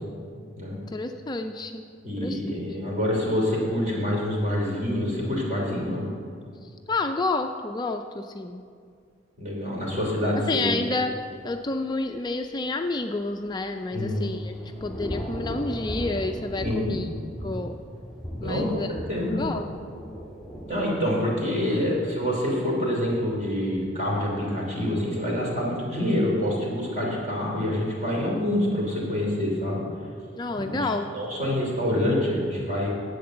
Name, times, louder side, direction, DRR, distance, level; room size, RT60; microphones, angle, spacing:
voice 1, 0.9-1.8 2.2-2.4 6.6-8.6 10.5-11.1 11.4-17.1 17.4-17.8 18.4-18.9 19.2-19.6 30.4-31.1, left 3 dB, 20° left, 5 dB, 0.4 m, -29 dB
voice 2, 2.0-6.1 9.4-10.8 13.9-14.2 16.6-17.0 18.4-19.4 20.7-29.8 30.5-32.9, left 1 dB, 40° right, -3 dB, 3.1 m, -26 dB
Thunder / Rain, 13.5-20.9, equal, ahead, 1.8 m, -37 dB
10.5 x 7.9 x 7.7 m, 2.2 s
head